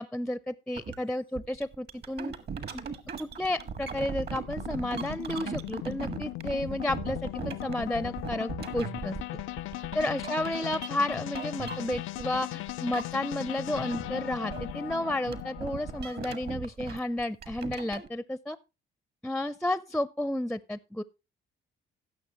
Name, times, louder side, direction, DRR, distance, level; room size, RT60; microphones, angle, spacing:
voice 1, 0.0-2.3 2.7-2.8 3.2-9.2 9.9-18.6 19.2-21.0, left 1 dB, 5° left, 0.4 m, -32 dB
sound 1, 0.8-1.0 1.3-12.4 12.7-13.5 13.7-18.1, right 6 dB, 55° right, 1.4 m, -39 dB
sound 2, 2.3-16.6, left 17 dB, 80° left, 0.4 m, -38 dB
16.5 x 6.6 x 2.9 m
cardioid pair, 90°, 20 cm